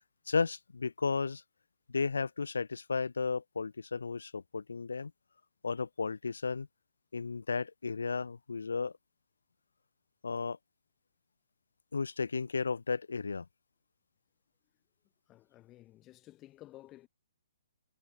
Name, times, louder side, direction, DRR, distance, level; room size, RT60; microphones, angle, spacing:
voice 1, 0.3-1.4 1.9-5.1 5.6-6.7 7.1-8.9 10.2-10.6 11.9-13.5, left 4 dB, 70° left, 0.5 m, -34 dB
voice 2, 15.3-17.1, left 16 dB, 20° left, 1.1 m, -54 dB
figure-of-eight pair, 125°, 0 cm